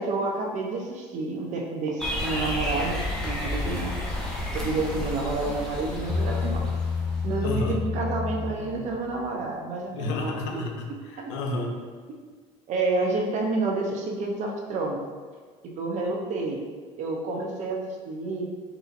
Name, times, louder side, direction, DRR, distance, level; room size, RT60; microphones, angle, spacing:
voice 1, 0.0-3.9 4.5-6.6 7.2-10.7 12.7-15.0 15.8-16.6 17.0-18.5, right 3 dB, 50° right, 0 dB, 0.7 m, -29 dB
sound 1, 2.0-7.5, left 1 dB, 5° left, 1.0 m, -31 dB
Bass guitar, 6.1-9.5, left 5 dB, 30° left, 0.4 m, -30 dB
voice 2, 7.4-7.8 9.9-11.9, left 2 dB, 80° left, 2 dB, 0.6 m, -31 dB
3.8 x 2.8 x 2.6 m, 1.5 s
hypercardioid pair, 80°, 15 cm